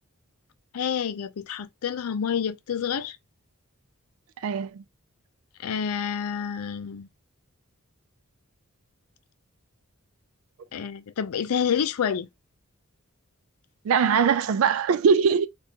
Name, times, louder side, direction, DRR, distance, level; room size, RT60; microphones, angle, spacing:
voice 1, 0.7-3.2 5.6-7.1 10.7-12.3, left 7 dB, 85° left, 0.4 m, -28 dB
voice 2, 4.4-4.8 13.9-15.5, right 6 dB, 65° right, 0.3 m, -21 dB
2.8 x 2.4 x 3.5 m
head